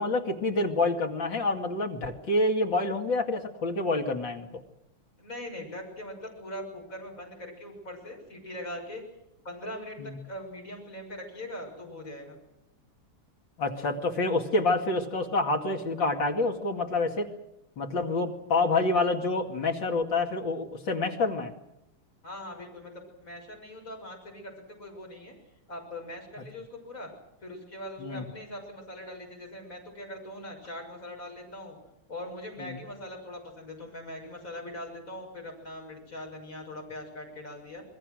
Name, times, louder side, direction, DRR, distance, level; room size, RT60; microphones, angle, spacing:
voice 1, 0.0-4.6 10.0-10.2 13.6-17.3 17.8-21.5 28.0-28.2 32.6-32.8, left 2 dB, 60° left, 3 dB, 3.1 m, -27 dB
voice 2, 5.2-9.0 9.5-12.4 22.2-25.3 25.7-27.1 27.4-31.8 32.1-37.8, left 1 dB, 40° left, 1 dB, 6.9 m, -41 dB
28.0 x 21.5 x 6.4 m, 0.86 s
omnidirectional pair, 2.3 m